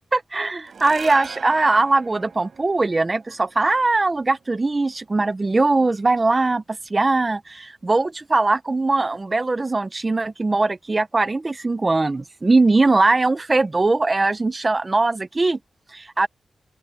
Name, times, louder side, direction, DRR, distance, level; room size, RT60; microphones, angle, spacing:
voice 1, 0.1-6.6 6.9-15.6 15.9-16.3, right 3 dB, 30° right, 0.9 m, -20 dB
sound 1, 0.7-7.1, right 6 dB, 60° right, 5.8 m, -41 dB
open air
wide cardioid pair, 105°, 0 cm